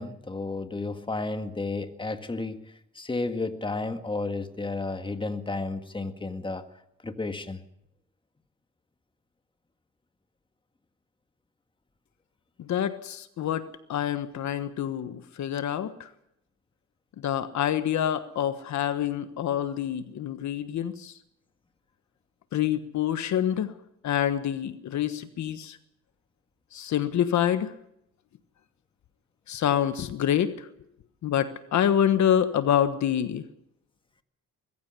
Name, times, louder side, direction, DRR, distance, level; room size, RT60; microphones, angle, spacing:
voice 1, 0.0-6.6 7.0-7.6, left 3 dB, 15° left, 8 dB, 1.9 m, -32 dB
voice 2, 12.6-16.1 17.2-21.1 22.5-23.7 24.0-25.8 26.7-27.7 29.5-30.7 31.2-33.4, left 10 dB, 65° left, 11 dB, 1.4 m, -26 dB
21.0 x 15.0 x 8.3 m, 0.78 s
cardioid pair, 90°, 30 cm